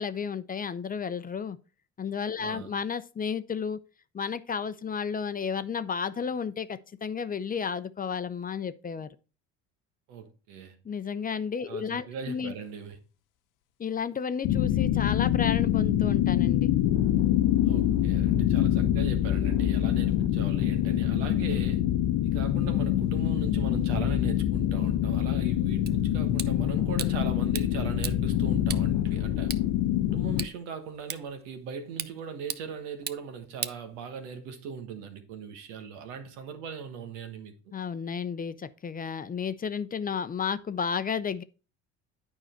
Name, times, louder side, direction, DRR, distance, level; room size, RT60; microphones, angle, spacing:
voice 1, 0.0-1.6 2.0-3.8 4.1-9.2 10.8-12.5 13.8-16.7 37.7-41.4, left 6 dB, 25° left, 0.6 m, -32 dB
voice 2, 2.4-2.7 10.1-10.8 11.7-13.0 17.6-21.8 22.2-29.6 30.0-37.7, right 6 dB, 85° right, 1.4 m, -39 dB
sound 1, 14.4-30.5, left 12 dB, 70° left, 0.7 m, -25 dB
sound 2, 25.9-34.5, right 8 dB, 30° right, 0.6 m, -41 dB
9.1 x 4.9 x 4.3 m
supercardioid pair, 80°, 33 cm